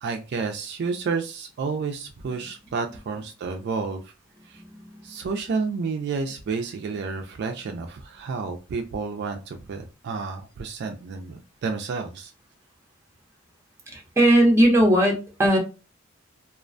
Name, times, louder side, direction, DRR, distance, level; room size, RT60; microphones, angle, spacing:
voice 1, 0.0-4.1 4.4-4.6 5.0-12.3, right 4 dB, 55° right, 5 dB, 0.3 m, -30 dB
voice 2, 13.9-15.6, right 1 dB, 15° right, -1 dB, 0.6 m, -18 dB
2.3 x 2.1 x 2.4 m, 0.31 s
head